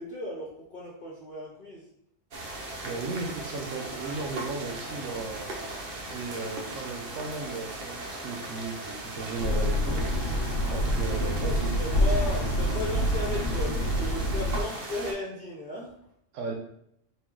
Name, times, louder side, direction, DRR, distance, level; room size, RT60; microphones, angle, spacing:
voice 1, 0.0-1.9 11.2-15.9, left 1 dB, 50° left, -5 dB, 0.9 m, -36 dB
sound 1, 2.3-15.1, right 2 dB, 50° right, 0.9 m, -38 dB
voice 2, 2.8-5.5 6.0-10.1 10.7-11.8 16.3-16.5, right 4 dB, 75° right, 1 dB, 1.0 m, -35 dB
sound 2, 9.4-14.6, equal, 75° left, 1.0 m, -27 dB
4.4 x 2.3 x 3.7 m, 0.73 s
omnidirectional pair, 1.3 m